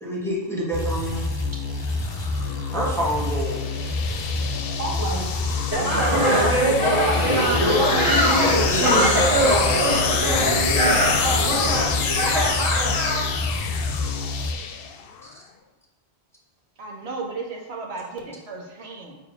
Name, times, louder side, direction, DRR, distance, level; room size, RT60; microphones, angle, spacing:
voice 1, 0.0-1.2 2.7-3.6 8.7-9.3 15.2-15.3, equal, ahead, -6 dB, 1.3 m, -26 dB
sound 1, 0.7-14.5, left 3 dB, 35° left, 0.5 m, -28 dB
sound 2, 1.8-15.3, left 7 dB, 70° left, 0.7 m, -28 dB
voice 2, 4.8-5.2 5.7-8.4 12.5-12.6, right 2 dB, 20° right, -3 dB, 1.1 m, -29 dB
sound 3, 5.7-13.2, right 1 dB, 35° right, 1.6 m, -21 dB
voice 3, 16.8-19.2, right 3 dB, 80° right, 0 dB, 1.3 m, -35 dB
6.9 x 2.9 x 4.9 m, 1.2 s
omnidirectional pair, 1.1 m